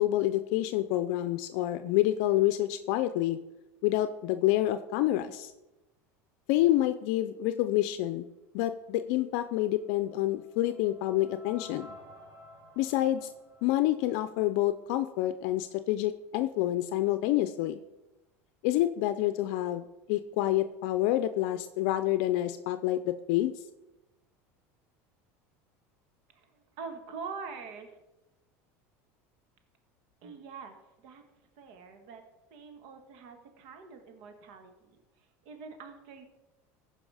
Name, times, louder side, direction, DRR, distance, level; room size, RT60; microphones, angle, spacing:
voice 1, 0.0-3.4 3.8-5.5 6.5-8.3 8.5-11.9 12.8-13.3 13.6-17.8 18.6-23.5, left 14 dB, 70° left, 11 dB, 0.5 m, -28 dB
sound 1, 9.7-14.9, left 1 dB, 40° right, 3.6 m, -53 dB
voice 2, 26.3-28.0 30.2-31.2 31.6-32.2 32.5-36.2, right 5 dB, 70° right, 6 dB, 1.7 m, -45 dB
15.0 x 5.4 x 4.9 m, 1.0 s
supercardioid pair, 115°, 8 cm